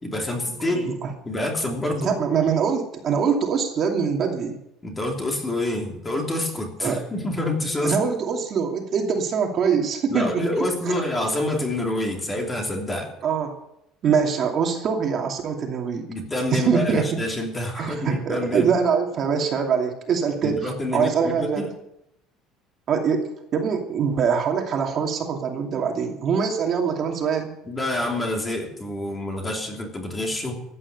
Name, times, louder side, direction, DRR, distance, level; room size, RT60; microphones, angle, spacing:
voice 1, 0.0-1.0 1.2-2.1 4.8-7.9 10.1-13.1 16.1-18.7 20.4-21.7 27.7-30.6, left 1 dB, 15° left, 1 dB, 3.0 m, -27 dB
voice 2, 0.6-1.1 2.0-4.6 6.8-7.0 7.8-11.0 13.2-13.6 14.0-16.0 16.5-17.1 17.8-21.6 22.9-27.5, right 6 dB, 35° right, 2 dB, 2.6 m, -24 dB
15.5 x 9.7 x 9.5 m, 0.81 s
cardioid pair, 160°, 0 cm